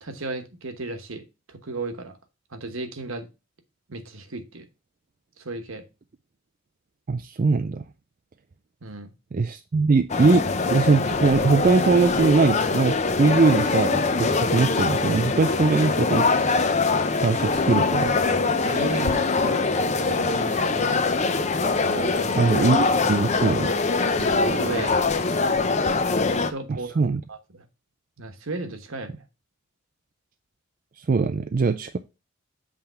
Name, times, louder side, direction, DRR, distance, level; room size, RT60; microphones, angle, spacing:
voice 1, 0.0-2.2 2.5-3.3 3.9-4.7 5.4-5.8 8.8-9.1 18.6-21.0 21.9-22.5 24.2-25.0 26.5-27.7 28.2-29.2, right 2 dB, 70° right, 1.1 m, -35 dB
voice 2, 7.1-7.8 9.3-16.3 17.2-18.2 22.4-23.7 26.7-27.2 31.0-32.0, right 4 dB, 40° right, 0.4 m, -21 dB
sound 1, 10.1-26.5, left 3 dB, 30° left, 0.6 m, -23 dB
7.8 x 3.5 x 5.6 m
head